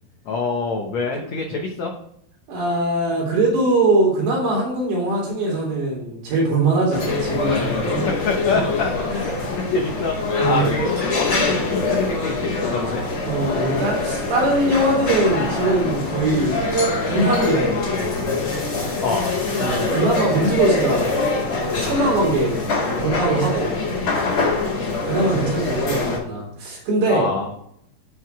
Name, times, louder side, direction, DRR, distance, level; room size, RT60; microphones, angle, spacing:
voice 1, 0.2-1.9 8.2-9.3 9.7-10.9 11.1-13.0 19.0-19.3 27.1-27.5, left 4 dB, 85° left, 1 dB, 1.5 m, -25 dB
voice 2, 2.5-8.0 9.1-9.2 10.4-10.7 13.2-16.7 17.1-18.1 19.6-21.3 21.7-22.5 23.0-23.7 25.1-27.3, right 2 dB, 90° right, -4 dB, 5.6 m, -21 dB
sound 1, 6.9-26.2, left 3 dB, 35° left, 2.7 m, -24 dB
12.0 x 4.9 x 4.7 m, 0.72 s
omnidirectional pair, 4.8 m